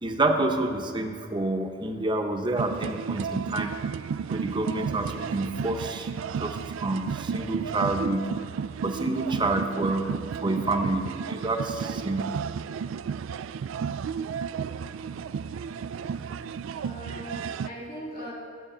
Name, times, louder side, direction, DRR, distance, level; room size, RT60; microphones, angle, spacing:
voice 1, 0.0-3.7 4.3-6.1 6.4-8.3 8.8-10.1 10.4-12.3, right 2 dB, 25° right, 4 dB, 0.8 m, -28 dB
sound 1, 2.6-17.7, right 6 dB, 80° right, 0.3 m, -33 dB
voice 2, 16.7-18.3, equal, 50° left, -4 dB, 2.7 m, -39 dB
13.5 x 8.1 x 4.4 m, 2.1 s
head